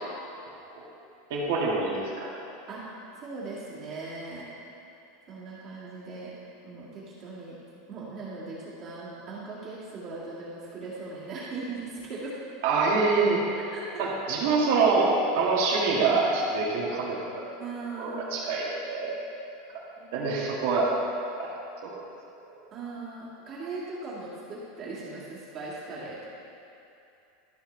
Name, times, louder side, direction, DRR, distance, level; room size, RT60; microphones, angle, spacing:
voice 1, 1.3-2.3 12.6-13.4 14.0-17.2 18.0-19.1 19.7-19.8 20.1-20.9 21.3-21.5 21.8-21.9, right 4 dB, 65° right, -5 dB, 2.0 m, -25 dB
voice 2, 3.2-4.5 5.3-6.3 6.6-7.6 7.9-12.4 13.7-14.0 17.6-18.3 20.0-20.3 22.7-26.3, right 3 dB, 30° right, -9 dB, 2.1 m, -39 dB
13.0 x 5.8 x 3.3 m, 2.8 s
supercardioid pair, 160°, 0 cm